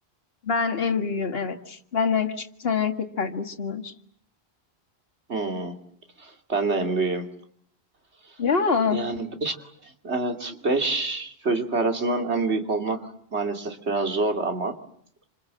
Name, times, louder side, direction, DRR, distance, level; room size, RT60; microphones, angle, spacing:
voice 1, 0.4-3.9 8.4-9.0, left 5 dB, 65° left, 6 dB, 1.9 m, -25 dB
voice 2, 5.3-5.8 6.2-7.3 8.9-9.6 9.8-14.8, right 3 dB, 85° right, 5 dB, 3.0 m, -27 dB
28.0 x 27.0 x 7.6 m, 0.66 s
omnidirectional pair, 1.1 m